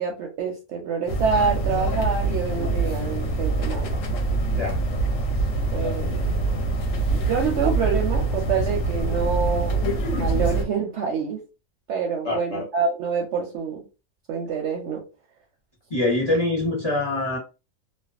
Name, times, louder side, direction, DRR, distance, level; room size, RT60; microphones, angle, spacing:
voice 1, 0.0-4.0 4.3-4.4 5.7-6.3 7.1-9.8 10.2-11.4 11.9-13.9 14.3-15.0, right 6 dB, 65° right, 0.7 m, -26 dB
sound 1, 1.1-10.6, right 2 dB, 70° left, 0.9 m, -24 dB
voice 2, 12.2-12.6 15.9-17.4, left 2 dB, 35° left, 0.8 m, -24 dB
2.4 x 2.2 x 2.4 m
omnidirectional pair, 1.5 m